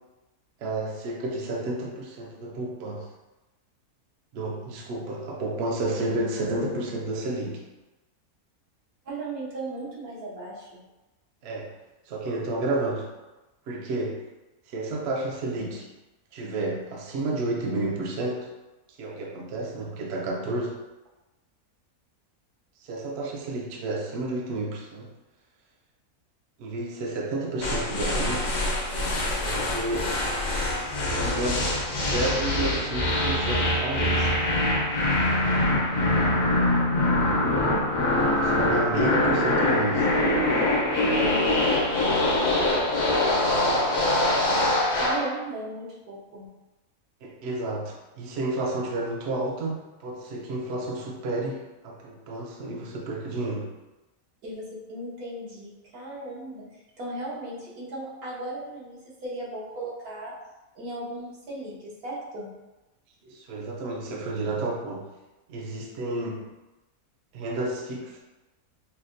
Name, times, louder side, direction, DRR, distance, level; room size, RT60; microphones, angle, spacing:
voice 1, 0.6-3.1 4.3-7.6 11.4-11.7 12.1-13.1 13.7-14.2 14.7-15.9 16.3-18.5 19.0-20.8 22.8-25.1 26.6-28.5 29.4-30.1 31.1-31.7 32.0-34.3 38.0-40.1 43.4-44.1 47.2-53.7 63.2-65.1 65.5-66.5 67.3-68.2, right 2 dB, 60° right, -1 dB, 0.7 m, -31 dB
voice 2, 9.0-10.8 35.4-35.8 41.1-41.6 44.9-46.5 54.4-56.7 57.0-60.3 60.7-62.5, right 1 dB, 80° right, -5 dB, 1.4 m, -36 dB
sound 1, 27.6-45.3, left 1 dB, 90° left, 1.3 m, -24 dB
5.6 x 2.1 x 2.5 m, 1.1 s
omnidirectional pair, 1.6 m